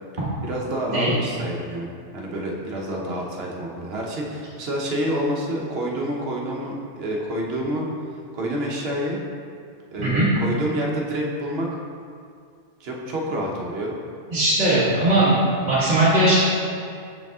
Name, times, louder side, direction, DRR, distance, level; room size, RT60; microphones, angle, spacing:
voice 1, 0.4-7.9 8.3-9.2 9.9-11.7 12.8-14.0, right 1 dB, 55° right, -2 dB, 1.1 m, -28 dB
voice 2, 14.3-15.3 15.6-16.4, right 1 dB, 35° right, -10 dB, 1.5 m, -19 dB
6.3 x 5.2 x 3.5 m, 2.3 s
omnidirectional pair, 1.3 m